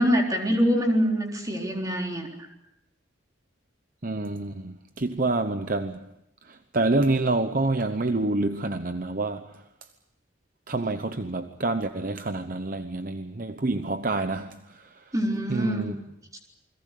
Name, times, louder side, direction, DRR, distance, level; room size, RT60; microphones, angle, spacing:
voice 1, 0.0-2.3 15.1-15.9, equal, 20° right, 3.9 m, -24 dB
voice 2, 4.0-6.1 6.5-9.6 10.7-14.8 15.5-15.9, right 2 dB, 45° right, 0.9 m, -27 dB
28.5 x 21.5 x 6.7 m
head